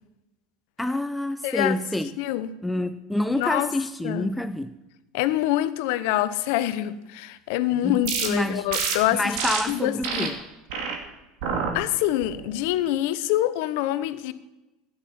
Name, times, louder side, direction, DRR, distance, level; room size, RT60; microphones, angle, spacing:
voice 1, 0.8-2.1 2.6-4.7 7.8-8.0 8.3-8.7 9.1-10.4, left 1 dB, 5° left, 0.6 m, -27 dB
voice 2, 1.4-1.8 2.2-2.5 3.3-3.7 4.0-4.3 5.1-9.4 9.7-10.3 11.7-14.3, left 14 dB, 70° left, 0.8 m, -25 dB
sound 1, 8.0-8.3 8.7-9.0 9.4-9.6 10.0-10.3 10.7-11.0 11.4-11.7 12.2-12.6, right 6 dB, 70° right, 2.3 m, -27 dB
12.5 x 9.7 x 5.8 m
hypercardioid pair, 95°, 0 cm